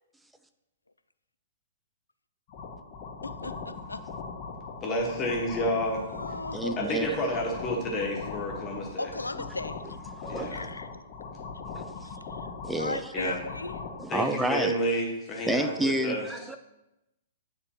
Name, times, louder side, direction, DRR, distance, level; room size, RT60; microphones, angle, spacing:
sound 1, 2.5-14.0, left 4 dB, 40° left, 0.9 m, -40 dB
voice 1, 3.2-4.0 5.9-7.0 9.0-9.8 10.5-11.0 12.0-12.5 12.8-13.8, left 2 dB, 80° left, 12 dB, 0.3 m, -37 dB
voice 2, 4.8-6.0 6.8-9.1 10.3-10.7 13.1-13.4 14.1-16.3, equal, 20° left, -1 dB, 1.4 m, -30 dB
voice 3, 6.5-7.1 10.2-10.6 12.6-13.0 14.0-14.7 15.5-16.6, right 1 dB, 5° right, 7 dB, 0.4 m, -29 dB
9.3 x 3.7 x 2.9 m, 0.92 s
figure-of-eight pair, 110°, 0 cm